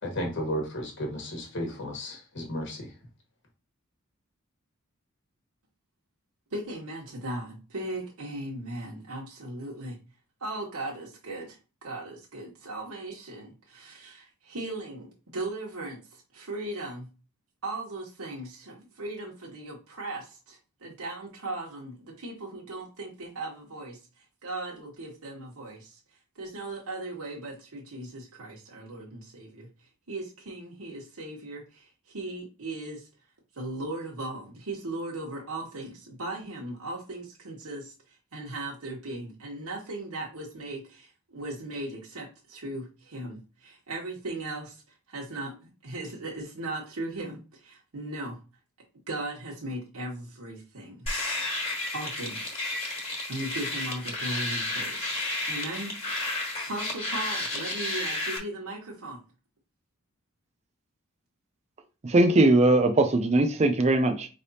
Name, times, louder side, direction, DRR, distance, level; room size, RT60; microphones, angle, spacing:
voice 1, 0.0-2.9, equal, 55° left, 1.3 m, -33 dB
voice 2, 6.5-10.0 10.4-17.1 17.6-26.0 26.3-29.7 30.1-33.1 33.5-44.8 45.1-48.4 49.1-51.1 51.9-52.6 53.3-55.1 55.5-59.2, right 2 dB, 90° right, 1.1 m, -38 dB
sound 1, 51.1-58.4, left 2 dB, 30° left, 1.5 m, -32 dB
voice 3, 62.0-64.3, right 2 dB, 30° right, 0.4 m, -20 dB
4.8 x 3.3 x 2.8 m
head